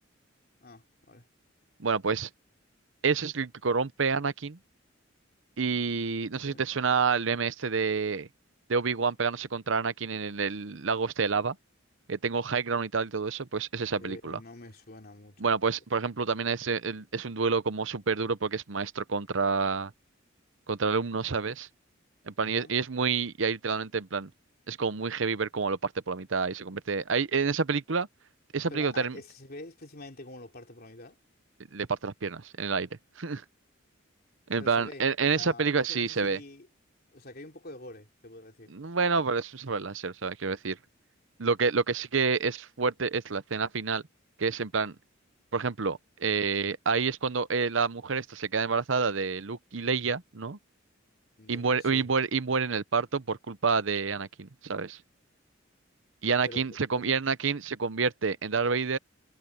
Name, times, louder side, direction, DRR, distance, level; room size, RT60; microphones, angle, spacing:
voice 1, 0.6-1.3 6.5-6.6 14.0-15.5 22.4-22.7 28.7-31.2 34.6-35.1 35.3-36.7 37.1-38.7 51.4-52.1 56.5-56.7 57.0-57.1, left 2 dB, 50° left, 3.2 m, -46 dB
voice 2, 1.8-2.3 3.0-4.6 5.6-8.3 8.7-11.6 12.1-14.4 15.4-19.9 20.7-21.7 22.3-24.3 24.7-28.1 28.5-29.2 31.7-32.9 33.2-33.4 34.5-36.4 38.7-40.8 41.4-44.0 44.4-44.9 45.5-50.6 51.5-55.0 56.2-59.0, right 5 dB, 70° right, 0.8 m, -28 dB
head